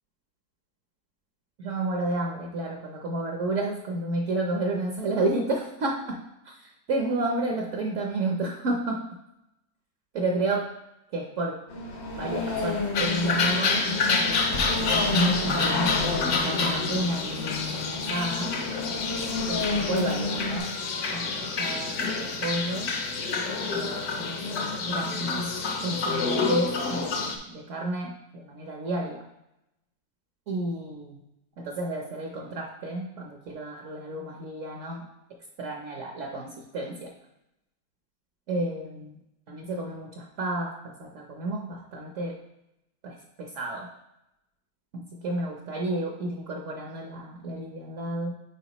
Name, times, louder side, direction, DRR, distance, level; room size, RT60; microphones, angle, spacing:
voice 1, 1.6-6.2 6.9-9.0 10.1-10.7 11.1-11.6 12.1-16.0 16.3-18.6 19.5-20.7 21.1-22.9 23.7-29.2 30.5-31.2 31.6-35.1 35.6-37.1 38.5-39.1 39.5-42.4 43.0-43.9 44.9-48.3, right 2 dB, 60° right, 1 dB, 0.8 m, -31 dB
sound 1, 11.7-20.6, left 3 dB, 80° left, 1.9 m, -31 dB
sound 2, 12.9-27.4, left 4 dB, 65° left, 1.1 m, -28 dB
sound 3, 14.5-17.4, left 1 dB, 45° left, 0.7 m, -41 dB
8.1 x 4.7 x 2.9 m, 0.88 s
omnidirectional pair, 2.0 m